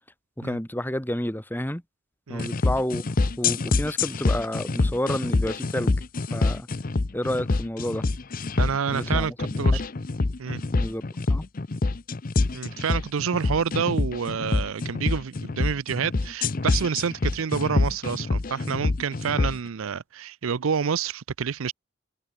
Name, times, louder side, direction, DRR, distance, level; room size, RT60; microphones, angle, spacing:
voice 1, 0.4-1.8 2.3-3.0 3.4-6.0 6.3-6.7 7.1-8.1 8.9-9.4 10.7-11.0 11.3-11.5, left 1 dB, 10° left, 1.9 m, -30 dB
sound 1, 2.4-19.6, left 3 dB, 40° left, 0.6 m, -26 dB
voice 2, 8.6-9.8 10.4-10.6 12.5-21.7, right 6 dB, 70° right, 0.5 m, -28 dB
head